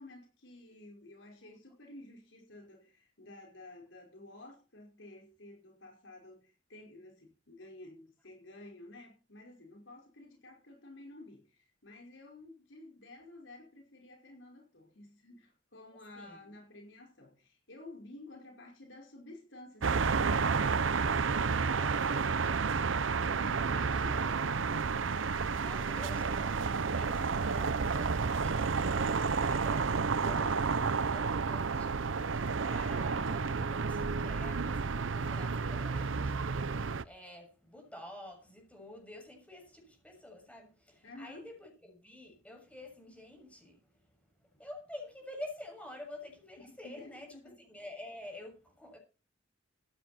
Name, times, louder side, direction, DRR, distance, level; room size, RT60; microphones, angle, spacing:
voice 1, 0.0-21.0 23.2-24.7 30.4-30.9 41.0-41.5 46.6-47.5, left 2 dB, 75° left, 5.5 m, -52 dB
voice 2, 16.1-16.5 21.6-24.3 25.6-47.3 47.6-49.0, left 1 dB, 5° left, 6.8 m, -50 dB
sound 1, 19.8-37.0, right 5 dB, 85° right, 0.7 m, -31 dB
15.0 x 11.0 x 4.4 m
head